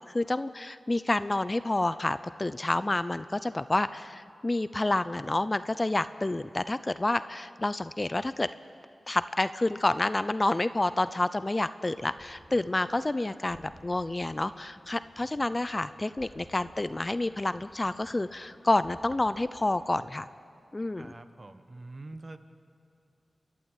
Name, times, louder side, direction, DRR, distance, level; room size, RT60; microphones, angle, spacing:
voice 1, 0.1-8.5 9.1-20.3 20.7-21.1, left 2 dB, 25° left, 14 dB, 0.5 m, -29 dB
sound 1, 11.0-20.2, equal, 5° right, 4.1 m, -57 dB
voice 2, 21.0-22.4, right 2 dB, 40° right, 9 dB, 1.3 m, -45 dB
28.5 x 11.5 x 9.2 m, 2.5 s
wide cardioid pair, 75°, 0 cm